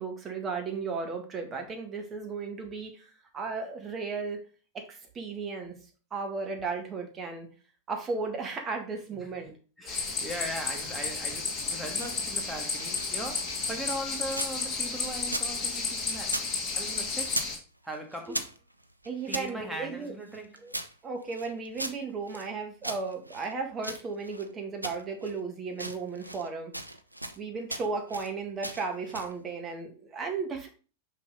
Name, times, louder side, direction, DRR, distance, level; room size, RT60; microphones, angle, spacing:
voice 1, 0.0-4.4 4.7-5.8 6.1-7.5 7.9-9.5 19.1-20.1 20.6-20.8 21.0-26.7 27.4-30.7, right 4 dB, 25° right, 1.8 m, -35 dB
voice 2, 9.8-16.4 16.8-17.4 17.8-18.5 19.3-20.7, right 1 dB, 5° right, 1.7 m, -39 dB
sound 1, 9.9-17.6, left 4 dB, 25° left, 2.0 m, -32 dB
sound 2, 11.7-14.6 14.9-16.5 16.8-17.6 17.9-19.5 20.0-22.5 22.8-24.5 24.8-25.4 25.7-26.5 26.7-27.4 27.7-28.3 28.6-29.4, right 1 dB, 90° right, 0.6 m, -39 dB
6.2 x 5.4 x 3.9 m
figure-of-eight pair, 90°, 0 cm